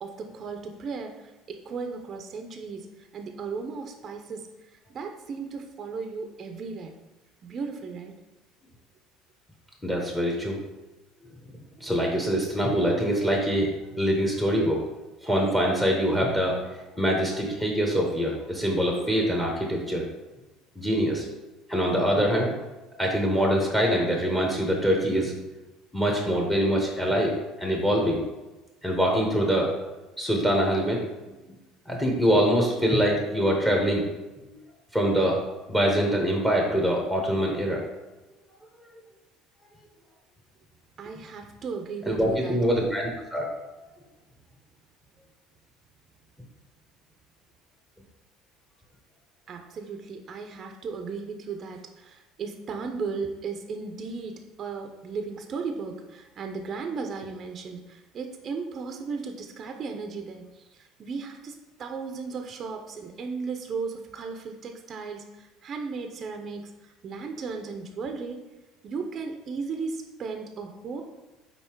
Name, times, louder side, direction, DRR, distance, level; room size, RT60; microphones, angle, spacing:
voice 1, 0.0-6.9 7.4-8.2 41.0-42.6 49.5-68.4 68.8-71.0, right 5 dB, 35° right, 4 dB, 0.6 m, -36 dB
voice 2, 9.8-10.6 11.8-13.7 14.0-14.8 15.2-16.6 17.0-20.1 20.8-21.2 21.7-22.5 23.0-25.3 25.9-28.2 28.8-29.7 30.2-31.0 31.9-34.1 34.9-35.4 35.7-37.8 42.1-43.5, equal, 10° left, 0 dB, 1.0 m, -24 dB
5.5 x 4.2 x 4.5 m, 1.1 s
cardioid pair, 130°, 0 cm